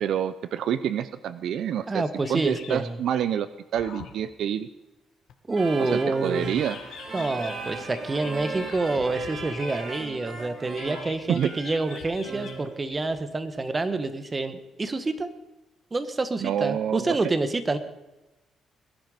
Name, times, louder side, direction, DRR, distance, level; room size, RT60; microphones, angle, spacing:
voice 1, 0.0-2.0 2.3-4.7 5.8-6.8 11.3-11.5 16.4-17.2, right 9 dB, 75° right, 14 dB, 0.6 m, -27 dB
voice 2, 1.9-3.0 5.5-6.6 7.1-15.3 15.9-17.8, right 3 dB, 25° right, 11 dB, 1.5 m, -27 dB
sound 1, 2.2-3.1 3.7-4.3 5.3-5.4 6.3-10.5 10.8-13.3, left 7 dB, 75° left, 1.8 m, -45 dB
sound 2, 5.5-12.7, right 3 dB, 50° right, 3.8 m, -38 dB
21.0 x 10.5 x 5.1 m, 1.0 s
cardioid pair, 90°, 0 cm